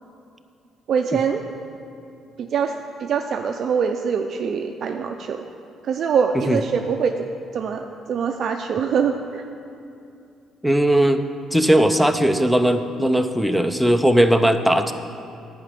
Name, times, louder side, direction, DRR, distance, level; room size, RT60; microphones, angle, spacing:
voice 1, 0.9-1.4 2.4-5.5 5.8-7.3 7.5-9.4, right 6 dB, 55° right, 4 dB, 0.5 m, -24 dB
voice 2, 10.6-11.2 11.5-14.9, right 1 dB, ahead, 6 dB, 0.5 m, -18 dB
11.0 x 5.1 x 8.3 m, 2.5 s
cardioid pair, 130°, 0 cm